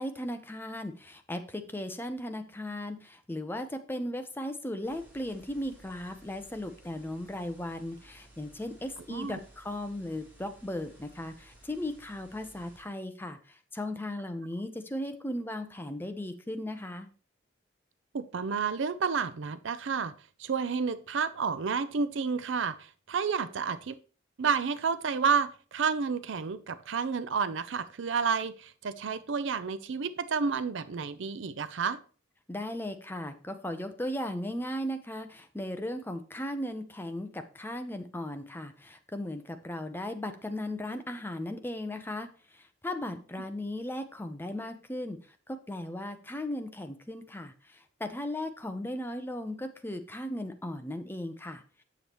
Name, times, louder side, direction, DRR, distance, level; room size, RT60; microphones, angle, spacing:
voice 1, 0.0-17.1 32.5-45.2 45.5-51.6, left 1 dB, 10° left, 0.6 m, -37 dB
sound 1, 4.8-12.8, right 1 dB, 10° right, 2.8 m, -57 dB
voice 2, 9.1-9.4 18.1-20.1 20.4-23.9 24.4-32.0, right 5 dB, 65° right, 0.5 m, -30 dB
8.1 x 7.0 x 3.0 m
head